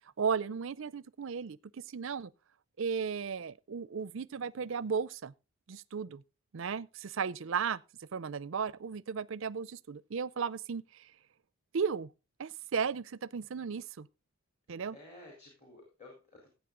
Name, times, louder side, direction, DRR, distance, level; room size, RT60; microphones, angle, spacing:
voice 1, 0.2-2.3 2.8-5.3 5.7-6.2 6.5-11.0 11.7-12.1 12.4-14.1 14.7-14.9, right 6 dB, 60° right, 0.5 m, -35 dB
voice 2, 4.3-4.7 14.9-16.5, left 2 dB, 30° left, 4.0 m, -54 dB
15.5 x 8.3 x 3.8 m
head